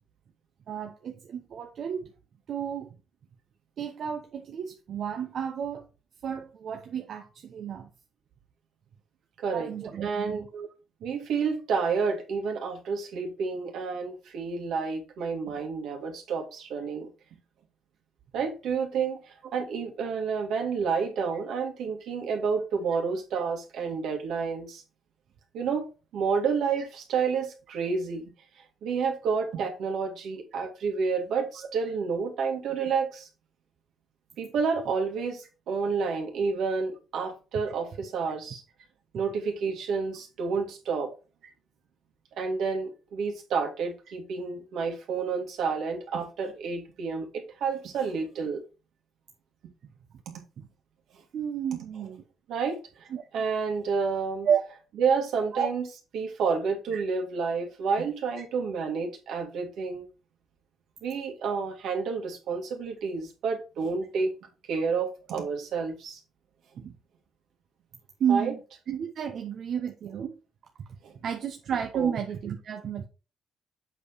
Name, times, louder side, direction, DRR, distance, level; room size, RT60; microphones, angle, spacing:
voice 1, 0.7-2.1 2.5-2.9 3.8-5.8 6.2-7.9 9.5-10.7 40.5-40.6 41.4-41.5 50.6-50.7 51.3-52.2 53.1-53.3 54.4-54.6 55.5-55.7 56.9-57.0 66.8-66.9 68.2-68.6 68.9-70.3 71.2-73.1, right 8 dB, 65° right, 0.9 m, -31 dB
voice 2, 10.0-10.4 11.0-17.1 18.3-24.8 25.5-25.9 26.1-28.3 28.8-33.3 34.4-38.6 39.1-41.1 42.3-48.6 50.3-50.4 52.5-52.8 53.3-54.5 55.0-55.8 56.1-60.0 61.0-64.3 64.7-66.2 68.3-68.5 71.0-71.1 71.9-72.1, right 5 dB, 80° right, 2.3 m, -29 dB
7.9 x 5.0 x 4.1 m
cardioid pair, 90°, 0 cm